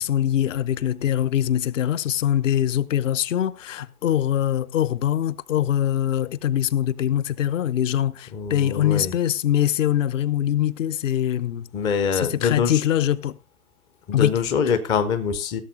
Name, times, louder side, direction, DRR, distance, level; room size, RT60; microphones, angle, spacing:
voice 1, 0.0-11.7 12.1-13.4 14.1-14.3, left 11 dB, 55° left, 0.8 m, -23 dB
voice 2, 8.3-9.1 11.7-12.8 14.1-15.6, left 6 dB, 10° left, 0.5 m, -24 dB
16.0 x 7.2 x 3.9 m
figure-of-eight pair, 115°, 45 cm